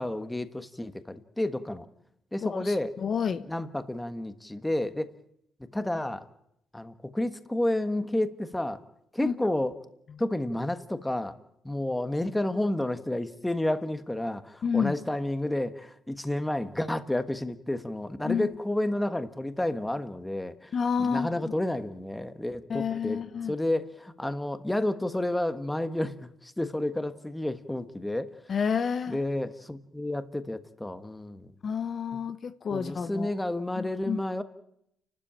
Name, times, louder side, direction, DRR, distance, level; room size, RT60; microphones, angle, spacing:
voice 1, 0.0-1.9 2.3-3.0 3.5-5.1 5.6-6.2 6.7-8.8 9.1-9.7 10.2-11.3 11.6-20.7 21.0-23.2 23.5-28.3 29.1-31.5 32.7-34.4, left 1 dB, 10° left, 10 dB, 1.4 m, -30 dB
voice 2, 2.4-3.4 9.2-9.3 14.6-14.9 18.2-18.5 20.7-21.5 22.7-23.5 28.5-29.2 31.6-33.3 33.8-34.2, left 6 dB, 45° left, 11 dB, 1.0 m, -30 dB
29.5 x 12.5 x 8.9 m, 0.77 s
cardioid pair, 110°, 0 cm